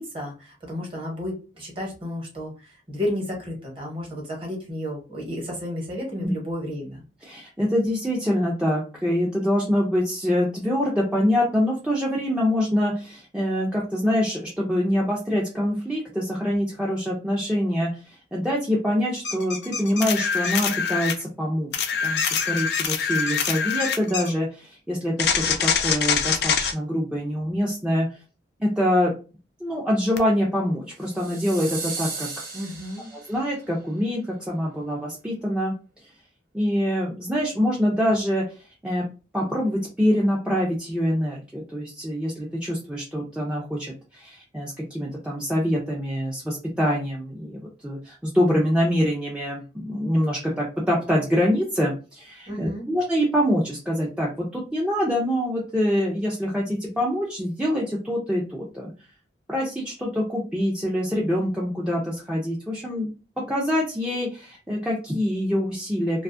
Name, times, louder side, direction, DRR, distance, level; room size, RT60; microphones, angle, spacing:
voice 1, 0.0-7.0 32.5-33.1 52.5-52.9, left 1 dB, 30° right, -1 dB, 1.0 m, -32 dB
voice 2, 7.2-21.7 22.0-28.2 28.6-29.1 29.6-32.4 33.1-35.7 36.0-36.1 36.5-39.0 39.3-58.9 59.5-63.1 63.5-66.2, equal, 5° right, -4 dB, 0.4 m, -25 dB
sound 1, 19.2-20.7 22.2-24.3, left 4 dB, 90° left, 0.9 m, -32 dB
sound 2, 20.0-21.2 21.7-24.0 25.2-26.7 30.2-30.3, left 7 dB, 60° left, 0.4 m, -24 dB
cymbal-sizzle-reverb-high, 31.0-33.5, right 4 dB, 50° right, 0.7 m, -35 dB
2.5 x 2.3 x 2.5 m, 0.33 s
head